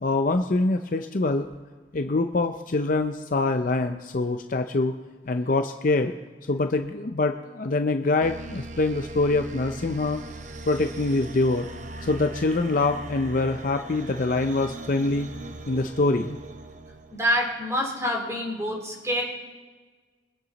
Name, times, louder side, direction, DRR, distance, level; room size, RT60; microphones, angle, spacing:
voice 1, 0.0-1.5 1.9-4.9 5.3-6.1 6.5-10.2 10.7-11.7 12.0-15.3 15.7-16.4, left 2 dB, 45° left, 6 dB, 0.5 m, -24 dB
sound 1, 8.2-17.6, right 2 dB, 45° right, 0.8 m, -40 dB
voice 2, 17.1-19.2, equal, 15° right, -1 dB, 3.3 m, -26 dB
23.5 x 8.8 x 4.0 m, 1.4 s
head